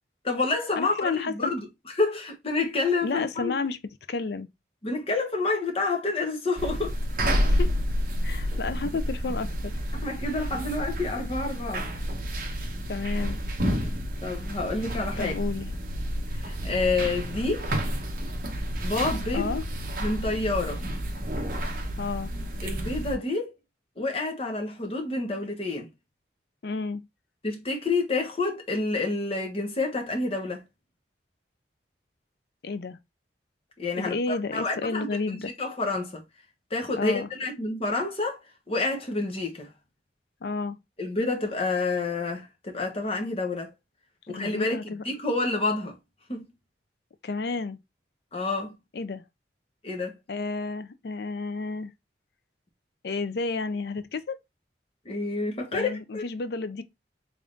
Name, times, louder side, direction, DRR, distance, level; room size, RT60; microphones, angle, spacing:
voice 1, 0.2-1.7 1.9-3.5 4.8-7.0 8.5-8.6 9.9-11.9 14.2-15.3 16.4-17.8 18.8-19.5 20.0-20.8 22.6-23.5 24.0-25.9 27.4-30.6 33.8-35.1 35.6-36.2 36.7-38.4 38.7-39.7 41.0-43.7 44.3-46.0 46.3-46.5 48.3-48.8 49.8-50.2 55.0-56.2, left 3 dB, 30° left, 1.0 m, -28 dB
voice 2, 0.8-1.5 3.0-3.8 4.1-4.5 7.4-7.7 8.2-9.5 12.9-13.4 15.2-15.7 19.3-19.6 22.0-22.3 26.6-27.1 32.6-33.0 34.0-35.5 37.0-37.3 40.4-40.8 44.3-45.0 47.2-47.8 48.9-49.2 50.3-51.9 53.0-54.4 55.7-56.8, left 4 dB, 60° left, 0.4 m, -31 dB
sound 1, 6.6-23.2, equal, 50° right, 0.9 m, -30 dB
3.6 x 3.5 x 2.4 m
head